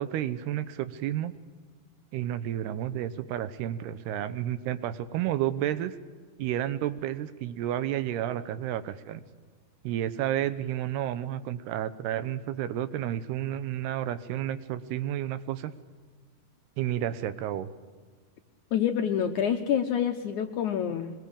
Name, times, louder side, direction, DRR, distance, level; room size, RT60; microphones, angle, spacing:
voice 1, 0.0-1.3 2.1-6.0 6.4-9.2 9.8-15.7 16.8-17.7, right 11 dB, 85° right, 13 dB, 3.0 m, -31 dB
voice 2, 18.7-21.1, left 8 dB, 75° left, 5 dB, 1.9 m, -27 dB
23.0 x 22.0 x 8.7 m, 1.5 s
omnidirectional pair, 4.5 m